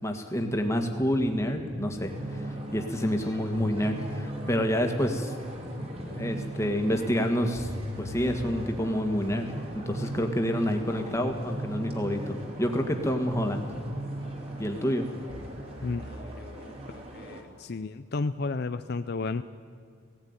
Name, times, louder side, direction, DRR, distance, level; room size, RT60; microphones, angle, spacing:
voice 1, 0.0-5.3 6.0-7.7 8.0-9.5 9.7-13.6 14.6-15.1, equal, 15° left, 4 dB, 1.8 m, -28 dB
sound 1, 0.8-16.9, right 1 dB, 50° right, 8.0 m, -39 dB
sound 2, 2.1-17.4, right 1 dB, 30° right, 3.3 m, -44 dB
voice 2, 15.8-19.4, left 3 dB, 50° left, 10 dB, 0.5 m, -33 dB
18.0 x 17.0 x 9.7 m, 2.2 s
head